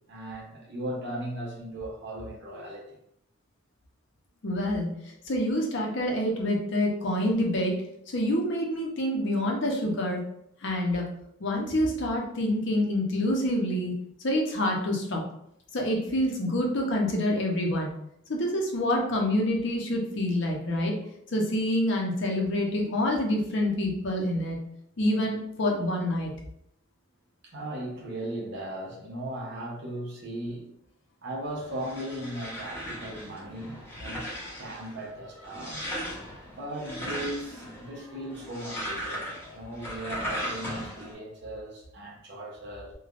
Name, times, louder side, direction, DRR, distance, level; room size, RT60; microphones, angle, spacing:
voice 1, 0.1-3.0 27.4-30.7 31.2-34.3 34.6-35.9 36.4-42.9, right 1 dB, 55° right, -2 dB, 0.7 m, -37 dB
voice 2, 4.4-4.9 5.2-7.7 8.1-10.2 10.6-11.1 11.4-13.9 14.2-15.2 15.7-17.9 18.3-20.9 21.3-24.6 25.0-26.3, left 1 dB, 60° left, 0 dB, 0.6 m, -27 dB
sound 1, 31.5-41.1, equal, 10° left, 0.7 m, -38 dB
3.2 x 2.2 x 2.4 m, 0.74 s
head